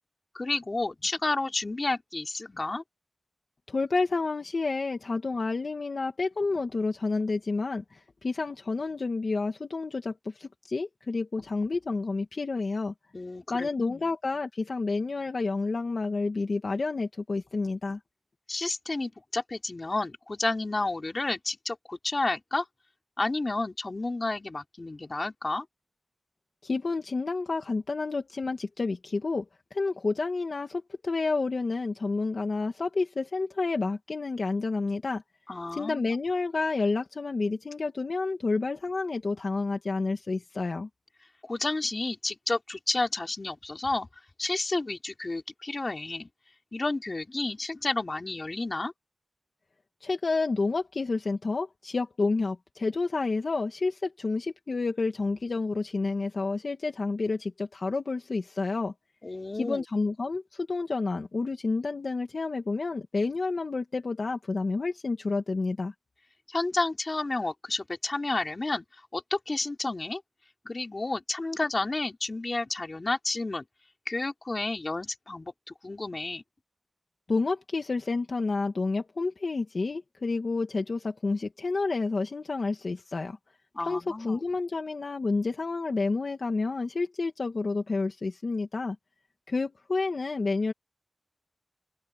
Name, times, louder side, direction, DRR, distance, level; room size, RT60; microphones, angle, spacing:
voice 1, 0.3-2.8 13.1-14.1 18.5-22.7 23.2-25.7 35.5-36.1 41.4-44.1 44.4-46.3 46.7-48.9 59.2-59.8 66.5-68.8 69.1-70.2 70.6-73.7 74.1-75.5 75.8-76.4 83.7-84.4, left 2 dB, 50° left, 4.2 m, -31 dB
voice 2, 3.7-12.9 13.5-18.0 26.6-29.5 29.7-35.2 35.7-40.9 50.0-58.9 59.5-65.9 77.3-83.4 83.8-89.0 89.5-90.7, left 3 dB, 80° left, 1.9 m, -29 dB
wide cardioid pair, 45°, 0 cm